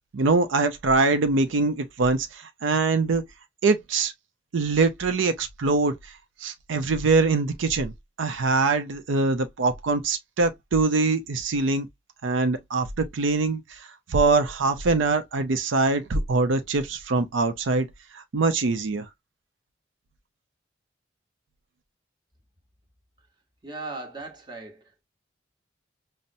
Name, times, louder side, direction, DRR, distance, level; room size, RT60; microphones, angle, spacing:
voice 1, 0.1-3.2 3.6-4.1 4.5-5.9 6.4-7.9 8.2-11.9 12.2-13.8 14.1-17.9 18.1-19.1, right 3 dB, 80° right, 0.5 m, -23 dB
voice 2, 23.6-25.0, right 3 dB, 20° right, 0.9 m, -38 dB
5.4 x 2.0 x 2.5 m
head